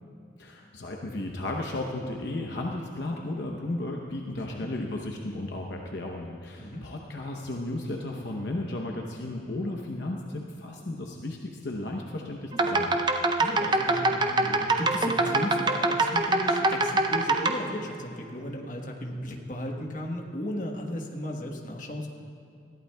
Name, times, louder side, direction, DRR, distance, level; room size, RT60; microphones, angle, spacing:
voice 1, 0.4-12.9, left 2 dB, 60° left, 1 dB, 0.8 m, -34 dB
sound 1, 12.5-17.5, right 2 dB, 25° right, 0.5 m, -24 dB
voice 2, 13.4-22.1, left 1 dB, 40° left, 1 dB, 1.2 m, -35 dB
20.5 x 14.0 x 2.3 m, 2.5 s
head